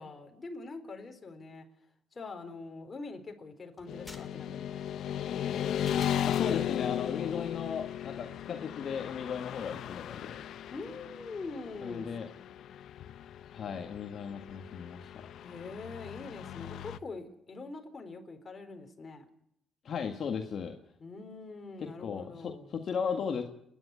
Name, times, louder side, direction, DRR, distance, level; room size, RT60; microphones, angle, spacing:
voice 1, 0.0-1.7 2.1-4.8 10.7-12.1 15.4-19.3 21.0-22.8, left 3 dB, 35° left, 4 dB, 4.1 m, -44 dB
sound 1, 3.8-6.7, left 2 dB, 10° left, 3.1 m, -52 dB
Motorcycle / Traffic noise roadway noise, 3.9-17.0, left 10 dB, 75° left, 0.8 m, -36 dB
voice 2, 6.2-10.4 11.8-12.3 13.5-15.3 19.8-20.8 21.8-23.4, left 6 dB, 60° left, 4 dB, 1.7 m, -36 dB
29.0 x 11.0 x 9.8 m, 0.77 s
cardioid pair, 90°, 0 cm